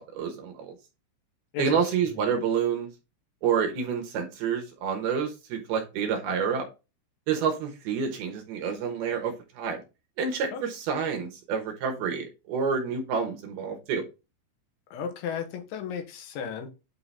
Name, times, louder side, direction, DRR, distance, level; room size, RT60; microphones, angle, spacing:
voice 1, 0.1-0.7 1.6-2.9 3.4-6.6 7.3-9.8 10.2-14.0, right 6 dB, 70° right, 2.6 m, -28 dB
voice 2, 14.9-16.7, left 7 dB, 85° left, 3.5 m, -34 dB
8.7 x 3.7 x 4.1 m
omnidirectional pair, 5.3 m